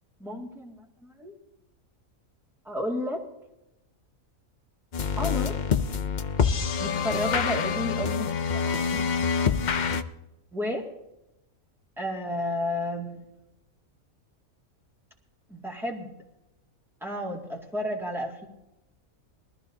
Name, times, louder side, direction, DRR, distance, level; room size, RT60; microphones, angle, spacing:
voice 1, 0.2-1.4 2.6-3.2 5.2-5.6 6.8-9.1 10.5-10.9 12.0-13.3 15.5-16.1 17.0-18.5, left 1 dB, ahead, -2 dB, 2.1 m, -32 dB
sound 1, 4.9-10.0, left 6 dB, 45° left, 0.6 m, -26 dB
21.5 x 14.0 x 2.8 m, 0.91 s
omnidirectional pair, 1.5 m